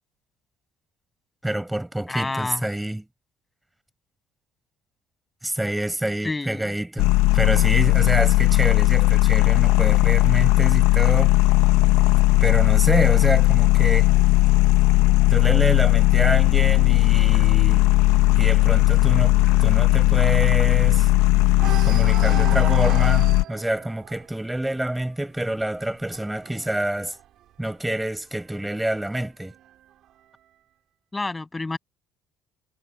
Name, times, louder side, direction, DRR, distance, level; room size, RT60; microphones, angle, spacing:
voice 1, 1.4-3.1 5.4-11.4 12.4-14.1 15.3-17.9 18.3-21.1 21.8-27.2 27.6-29.5, right 1 dB, 5° right, 7.0 m, -27 dB
voice 2, 2.1-2.6 6.2-6.7 31.1-31.8, left 3 dB, 15° left, 7.0 m, -29 dB
sound 1, 7.0-23.4, left 19 dB, 90° left, 0.9 m, -17 dB
sound 2, 12.8-16.4 16.8-17.1 17.4-17.5 17.9-21.2 21.5-28.1 28.9-29.9, right 12 dB, 65° right, 4.9 m, -39 dB
supercardioid pair, 95°, 0 cm